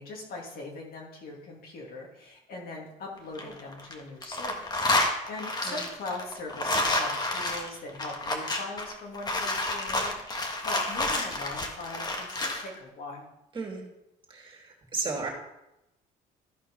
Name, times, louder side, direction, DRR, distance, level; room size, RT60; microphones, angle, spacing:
voice 1, 0.0-13.3, left 3 dB, 65° left, -1 dB, 2.8 m, -41 dB
sound 1, 3.2-3.9 4.2-12.7, left 2 dB, 25° left, 1.6 m, -29 dB
voice 2, 14.3-15.3, right 4 dB, 30° right, -1 dB, 2.7 m, -34 dB
13.5 x 4.5 x 5.5 m, 0.87 s
cardioid pair, 110°, 17 cm